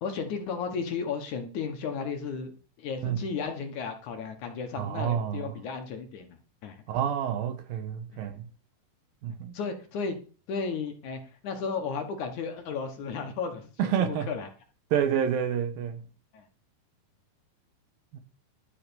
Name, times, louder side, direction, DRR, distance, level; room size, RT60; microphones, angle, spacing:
voice 1, 0.0-6.8 8.1-8.2 9.5-10.2 10.5-14.5 16.3-16.4, left 5 dB, 65° left, 2.4 m, -34 dB
voice 2, 4.8-5.5 6.9-8.5 9.2-9.5 13.8-14.3 14.9-16.1 18.1-18.2, right 8 dB, 75° right, 2.9 m, -28 dB
11.5 x 6.7 x 6.9 m
omnidirectional pair, 4.3 m